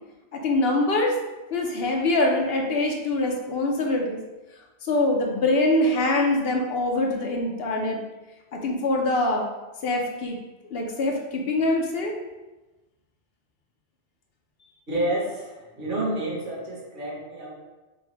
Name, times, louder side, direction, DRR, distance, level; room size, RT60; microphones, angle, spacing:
voice 1, 0.3-1.2 1.5-4.2 4.8-8.0 8.5-9.5 9.8-10.4 10.7-12.1, left 2 dB, 65° left, 1 dB, 0.8 m, -24 dB
voice 2, 14.9-17.5, right 1 dB, 50° right, -5 dB, 1.4 m, -29 dB
5.5 x 2.2 x 3.3 m, 1.1 s
omnidirectional pair, 1.1 m